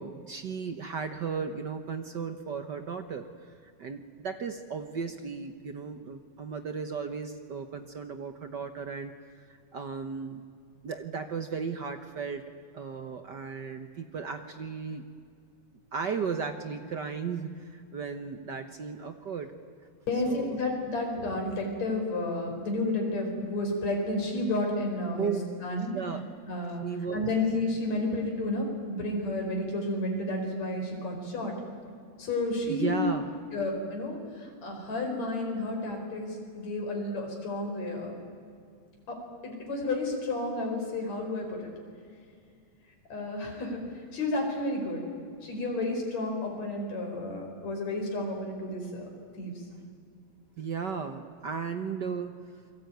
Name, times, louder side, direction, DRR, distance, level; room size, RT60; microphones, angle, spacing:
voice 1, 0.0-10.4 10.8-12.4 12.7-15.0 15.9-19.5 20.2-20.6 25.2-25.4 25.9-26.2 26.8-27.2 32.7-33.4 50.6-52.4, right 6 dB, 60° right, 8 dB, 1.1 m, -35 dB
voice 2, 20.1-25.3 25.6-25.9 26.5-26.8 27.1-31.5 32.2-33.2 33.5-38.1 39.1-39.2 39.4-41.7 43.1-43.8 44.1-45.0 45.4-49.1 49.4-49.5, left 2 dB, 65° left, 2 dB, 6.1 m, -31 dB
28.5 x 22.0 x 9.3 m, 2.2 s
omnidirectional pair, 3.4 m